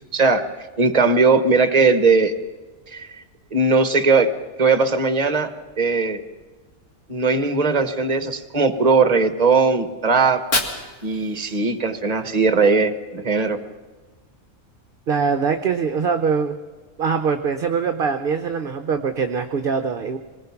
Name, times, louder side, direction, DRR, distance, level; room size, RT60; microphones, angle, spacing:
voice 1, 0.1-0.4 0.8-2.3 2.9-3.1 3.5-4.3 4.6-5.5 5.8-6.2 7.1-10.4 11.0-13.6, right 4 dB, 30° right, 10 dB, 1.2 m, -18 dB
Fire, 10.2-12.2, left 2 dB, 55° left, 2.4 m, -29 dB
voice 2, 15.1-16.6 17.0-20.2, right 5 dB, 45° right, 7 dB, 0.9 m, -22 dB
25.5 x 19.5 x 5.9 m, 1.4 s
omnidirectional pair, 1.5 m